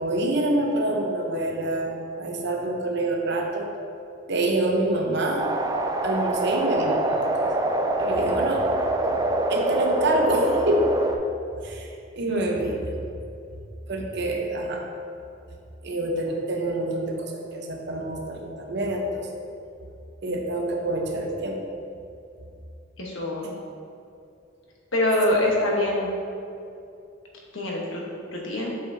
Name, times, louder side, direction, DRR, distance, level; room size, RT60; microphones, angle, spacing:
voice 1, 0.0-3.7 4.3-5.5 6.0-7.5 8.0-8.7 9.5-10.9 11.6-11.9 12.2-12.9 13.9-14.8 15.8-19.3 20.2-21.6, right 1 dB, 60° right, 1 dB, 0.8 m, -26 dB
sound 1, 5.4-11.2, right 1 dB, 20° right, 0.3 m, -25 dB
voice 2, 23.0-23.5 24.9-26.1 27.5-28.0 28.3-28.8, left 1 dB, 85° left, -2 dB, 1.2 m, -24 dB
7.6 x 5.6 x 2.7 m, 2.6 s
head